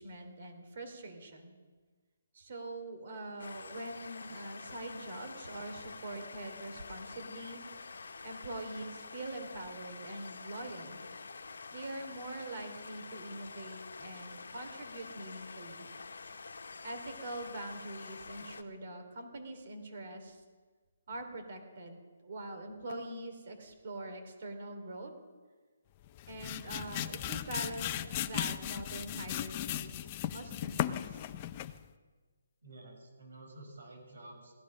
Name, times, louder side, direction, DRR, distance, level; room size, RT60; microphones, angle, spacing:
voice 1, 0.0-1.6 2.3-7.6 8.0-11.0 11.7-15.9 16.8-20.4 21.1-25.1 26.3-31.3, right 2 dB, 50° right, 5 dB, 2.9 m, -44 dB
sound 1, 3.4-18.6, left 4 dB, 80° left, 1.1 m, -47 dB
sound 2, 26.0-31.9, left 12 dB, 25° left, 0.5 m, -37 dB
voice 2, 32.6-34.6, right 2 dB, 80° right, 2 dB, 5.8 m, -51 dB
16.5 x 12.5 x 6.3 m, 1.4 s
hypercardioid pair, 165°, 0 cm